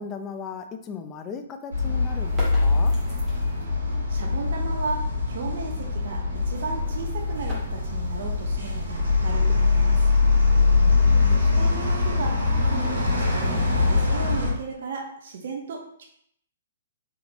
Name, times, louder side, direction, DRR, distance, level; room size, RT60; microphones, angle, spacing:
voice 1, 0.0-3.0 10.5-11.3, left 5 dB, 25° left, 6 dB, 0.5 m, -37 dB
sound 1, 1.7-14.5, left 3 dB, 85° right, 1.6 m, -22 dB
sound 2, 2.2-3.8 6.5-9.4, right 2 dB, 20° right, 1.7 m, -42 dB
voice 2, 4.1-5.0 5.3-6.2 6.5-10.0 11.3-12.3 12.6-16.1, right 4 dB, 60° right, 0 dB, 0.8 m, -35 dB
3.7 x 3.6 x 3.0 m, 0.69 s
hypercardioid pair, 135°, 0 cm